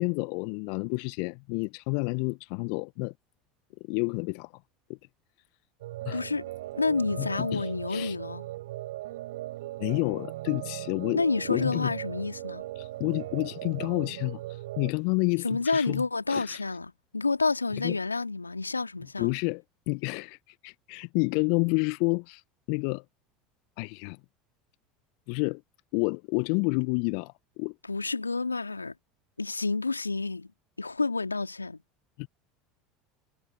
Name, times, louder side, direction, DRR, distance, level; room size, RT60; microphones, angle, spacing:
voice 1, 0.0-3.1 3.9-4.5 4.9-5.0 6.1-6.2 7.2-8.2 9.8-11.9 12.8-16.0 16.3-16.6 17.8-18.0 19.2-22.4 22.7-23.0 23.8-24.2 25.3-25.6 25.9-27.7 32.2-32.3, left 36 dB, 60° left, 0.7 m, -30 dB
sound 1, 5.8-14.9, right 16 dB, 65° right, 7.6 m, -39 dB
voice 2, 6.1-6.4 6.7-8.5 11.1-12.7 15.4-19.3 27.9-28.9 29.4-30.5 30.8-31.8, left 3 dB, 90° left, 2.1 m, -29 dB
figure-of-eight pair, 75°, 0 cm